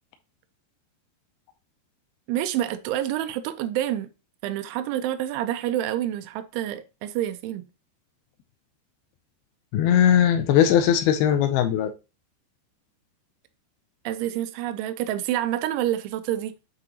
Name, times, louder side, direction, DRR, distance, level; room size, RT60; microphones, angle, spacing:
voice 1, 2.3-4.1 4.4-7.7 14.0-16.5, right 12 dB, 85° right, 3.1 m, -28 dB
voice 2, 9.7-11.9, left 9 dB, 80° left, 2.2 m, -19 dB
8.0 x 6.0 x 3.0 m
omnidirectional pair, 5.3 m